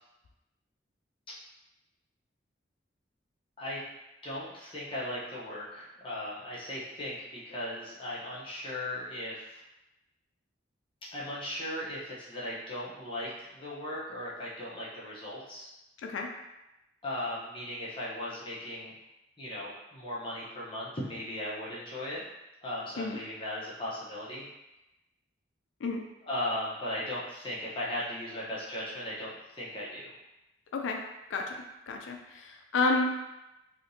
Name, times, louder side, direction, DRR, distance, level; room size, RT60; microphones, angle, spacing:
voice 1, 4.2-9.6 11.1-15.7 17.0-18.9 19.4-22.2 22.6-24.4 26.2-30.1, left 1 dB, 30° left, -7 dB, 0.8 m, -37 dB
voice 2, 31.9-33.1, left 3 dB, 85° left, 3 dB, 0.4 m, -30 dB
3.4 x 2.7 x 2.7 m, 0.96 s
head